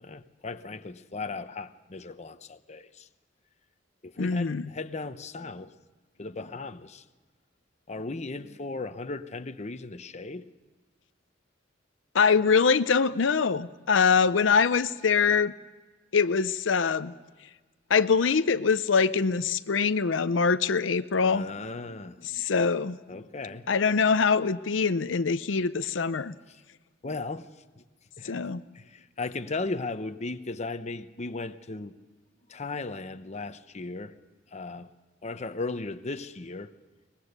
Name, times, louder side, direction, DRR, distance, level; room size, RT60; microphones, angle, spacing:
voice 1, 0.0-3.1 4.0-5.7 6.2-7.0 7.9-10.5 21.2-22.5 23.1-23.7 27.0-27.5 27.8-27.9 28.2-28.3 28.7-31.9 32.5-34.1 34.5-34.9 35.2-36.7, left 3 dB, 35° left, 0.8 m, -36 dB
voice 2, 4.2-4.7 12.1-15.5 16.1-17.1 17.9-21.5 22.2-23.0 23.7-26.3 28.2-28.6, left 5 dB, 85° left, 0.6 m, -24 dB
23.5 x 20.5 x 6.7 m
head